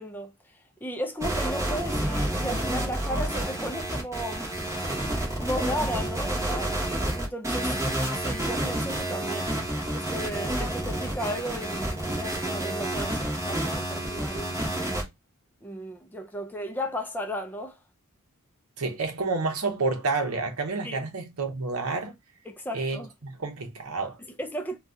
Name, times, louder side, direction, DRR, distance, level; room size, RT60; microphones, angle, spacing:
voice 1, 0.0-4.5 5.4-6.8 7.1-7.8 8.2-9.6 9.9-14.6 15.6-17.8 20.8-21.1 22.5-23.1 24.4-24.8, equal, 10° left, 0.4 m, -35 dB
sound 1, 1.2-15.0, right 1 dB, 15° right, 0.8 m, -29 dB
voice 2, 18.8-22.1 22.7-24.2, right 3 dB, 80° right, 0.7 m, -29 dB
2.7 x 2.2 x 3.3 m
head